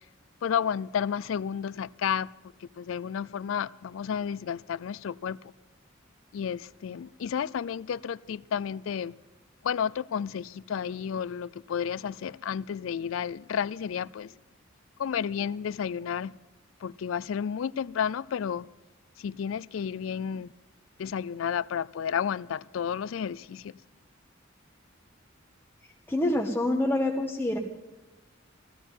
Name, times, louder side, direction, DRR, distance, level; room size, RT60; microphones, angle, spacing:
voice 1, 0.4-2.3 2.6-5.5 6.3-9.2 9.6-14.3 15.0-16.4 16.8-18.7 19.2-20.5 21.0-23.7, left 7 dB, 75° left, 0.4 m, -31 dB
voice 2, 26.1-27.6, left 1 dB, 10° left, 1.1 m, -26 dB
15.5 x 14.0 x 5.4 m
head